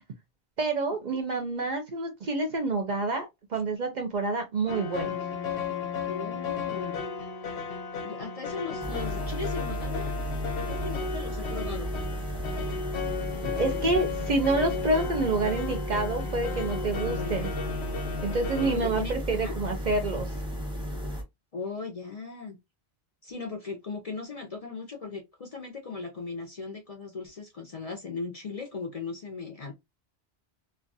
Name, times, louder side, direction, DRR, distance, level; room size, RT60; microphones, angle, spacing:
voice 1, 0.6-3.3 3.5-5.2 13.4-17.5 18.2-20.3, right 3 dB, 50° right, 0.6 m, -28 dB
sound 1, 4.7-18.7, left 5 dB, 90° left, 0.9 m, -34 dB
voice 2, 6.1-7.0 8.0-10.1 10.6-11.9 16.9-17.6 18.6-19.5 21.5-22.6 23.2-29.7, left 4 dB, 45° left, 0.5 m, -38 dB
sound 2, 8.8-21.2, equal, 5° right, 0.6 m, -34 dB
2.3 x 2.2 x 2.6 m
omnidirectional pair, 1.1 m